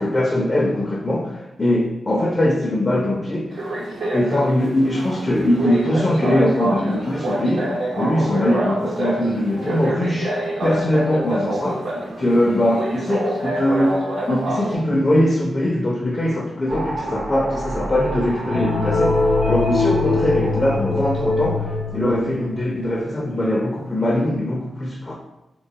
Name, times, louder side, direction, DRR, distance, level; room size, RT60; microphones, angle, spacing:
voice 1, 0.0-3.6 4.1-10.3 10.6-11.8 12.2-14.0 14.3-19.2 19.5-25.1, left 1 dB, 30° left, -1 dB, 0.4 m, -21 dB
sound 1, 3.5-14.8, right 1 dB, 85° right, 0.8 m, -27 dB
sound 2, 16.7-23.1, right 1 dB, 55° right, 0.5 m, -31 dB
sound 3, 18.5-22.6, left 3 dB, 90° left, 0.5 m, -22 dB
3.7 x 2.2 x 2.7 m, 0.98 s
cardioid pair, 85°, 0 cm